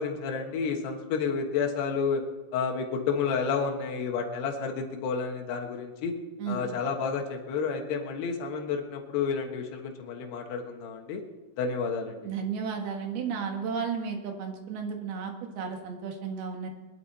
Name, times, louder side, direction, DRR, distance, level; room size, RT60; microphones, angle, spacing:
voice 1, 0.0-2.2 2.5-6.2 6.5-11.2 11.6-12.3, left 5 dB, 85° left, 2 dB, 3.5 m, -30 dB
voice 2, 12.2-16.7, right 6 dB, 75° right, 3 dB, 3.6 m, -33 dB
21.0 x 12.0 x 4.2 m, 1.2 s
omnidirectional pair, 4.6 m